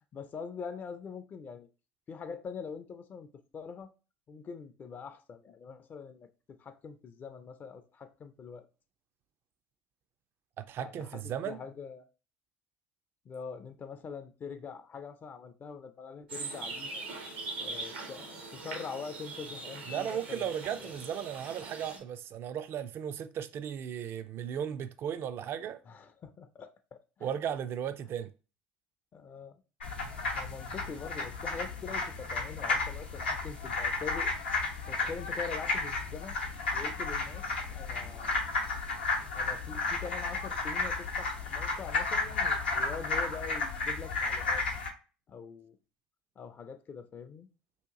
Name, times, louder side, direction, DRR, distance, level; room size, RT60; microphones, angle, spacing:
voice 1, 0.1-1.7 2.1-3.9 4.3-8.7 10.8-12.1 13.3-17.0 17.6-20.5 20.8-21.0 25.9-27.3 29.1-29.6 30.0-34.3 34.9-36.4 36.7-38.4 39.3-44.6 45.3-45.8 46.4-47.5, left 5 dB, 35° left, 0.4 m, -44 dB
voice 2, 10.6-11.6 19.8-25.8 27.2-28.3, right 9 dB, 45° right, 0.4 m, -36 dB
sound 1, 16.3-22.0, right 3 dB, 85° right, 0.9 m, -41 dB
sound 2, 29.8-44.9, left 3 dB, 85° left, 0.7 m, -33 dB
2.8 x 2.4 x 3.6 m
hypercardioid pair, 70°, 5 cm